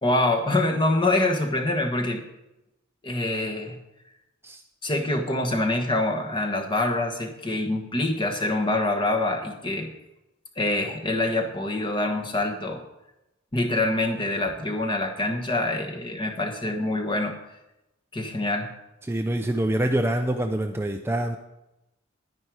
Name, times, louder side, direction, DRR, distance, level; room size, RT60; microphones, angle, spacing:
voice 1, 0.0-2.2 3.0-3.8 4.8-9.9 10.6-12.8 13.5-17.3 18.1-18.7, left 2 dB, 25° left, 3 dB, 1.4 m, -25 dB
voice 2, 19.0-21.4, right 1 dB, 10° right, 4 dB, 0.5 m, -25 dB
10.5 x 9.8 x 4.8 m, 0.92 s
head